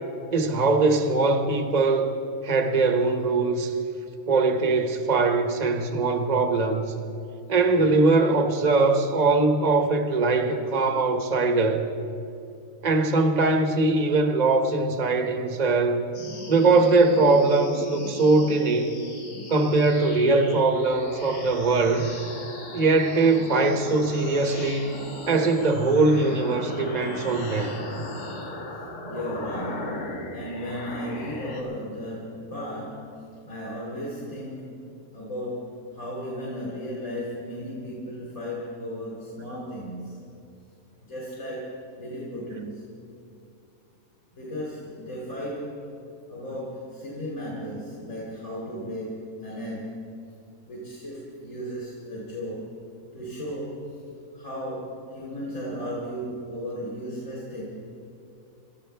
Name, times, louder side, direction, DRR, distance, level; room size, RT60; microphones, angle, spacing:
voice 1, 0.3-2.2 2.4-3.8 4.3-6.9 7.5-11.9 12.8-16.0 16.5-18.9 19.5-22.1 22.7-25.0 25.3-27.7, right 3 dB, 30° right, 5 dB, 1.1 m, -21 dB
sound 1, 16.1-31.6, left 2 dB, 80° left, 2.2 m, -38 dB
voice 2, 29.0-34.8 35.1-40.4 41.0-42.9 44.4-45.9 46.3-50.2 50.7-52.8 53.1-54.0 54.3-57.6, equal, 45° left, -6 dB, 3.2 m, -35 dB
28.0 x 13.5 x 3.4 m, 2.6 s
omnidirectional pair, 1.6 m